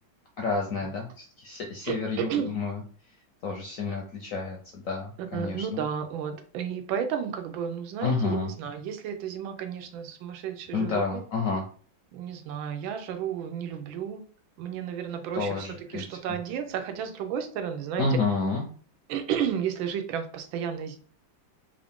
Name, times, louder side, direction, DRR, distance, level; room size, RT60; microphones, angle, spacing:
voice 1, 0.4-2.8 3.4-5.8 8.0-8.5 10.7-11.6 15.3-16.4 18.0-18.6, left 4 dB, 70° left, 1 dB, 0.8 m, -30 dB
voice 2, 1.8-2.5 5.3-11.2 12.1-14.2 14.6-18.1 19.1-21.0, right 8 dB, 90° right, 7 dB, 1.4 m, -32 dB
3.6 x 2.5 x 3.5 m, 0.43 s
omnidirectional pair, 2.1 m